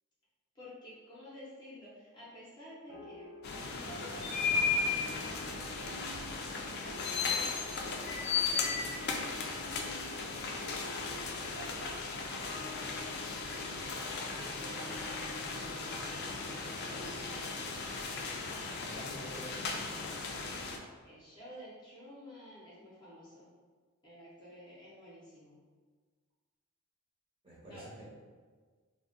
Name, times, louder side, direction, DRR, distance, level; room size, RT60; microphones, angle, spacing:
voice 1, 0.5-3.3 3.8-11.9 12.3-17.2 21.0-23.5 24.0-25.6 27.6-27.9, left 1 dB, 20° left, -8 dB, 0.7 m, -53 dB
sound 1, 2.9-19.7, left 1 dB, 75° right, 0.8 m, -50 dB
sound 2, 3.4-20.8, left 4 dB, 45° left, 0.3 m, -36 dB
voice 2, 18.8-19.8 27.4-28.0, equal, 25° right, -8 dB, 0.8 m, -47 dB
2.3 x 2.1 x 3.7 m, 1.5 s
head